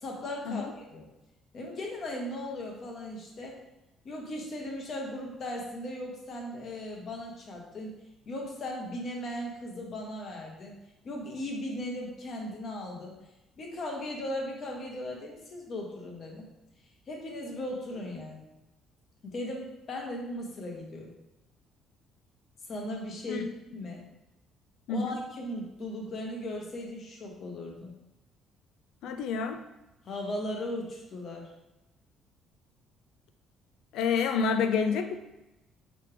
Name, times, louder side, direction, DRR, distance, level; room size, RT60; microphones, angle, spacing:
voice 1, 0.0-1.1 1.5-3.6 4.0-7.9 8.3-10.7 11.0-13.1 13.6-16.5 17.1-18.4 19.2-21.1 22.7-23.4 23.7-24.0 24.9-27.9 30.0-31.5, left 1 dB, 45° left, 0 dB, 1.1 m, -37 dB
voice 2, 24.9-25.2 29.0-29.6 33.9-35.1, left 5 dB, 75° left, 7 dB, 0.4 m, -28 dB
4.6 x 3.3 x 3.3 m, 0.97 s
cardioid pair, 120°, 0 cm